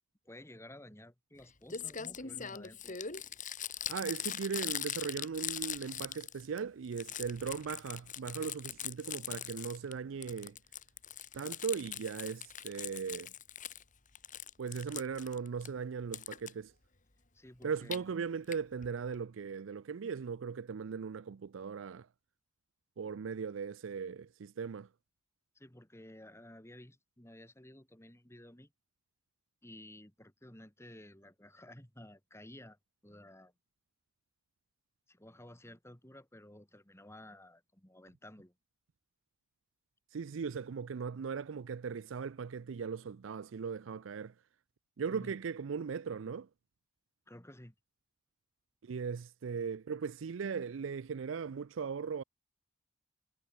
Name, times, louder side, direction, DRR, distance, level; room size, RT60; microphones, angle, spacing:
voice 1, 0.3-3.0 17.3-18.1 25.6-28.7 29.6-33.5 35.1-38.6 45.1-45.4 47.3-47.8, left 1 dB, 15° left, 3.4 m, -53 dB
Crumpling crinkling, 1.4-1.5 1.7-6.6 6.9-9.9 10.2-13.8 14.2-15.7 16.1-16.5 17.6-18.0 18.5-18.6 18.8-18.9 19.1-19.2, left 9 dB, 40° left, 3.0 m, -41 dB
voice 2, 3.9-10.6 11.3-13.3 14.6-16.7 17.6-22.1 23.0-24.9 40.1-44.3 45.0-46.5 48.8-52.2, right 6 dB, 75° right, 0.4 m, -38 dB
head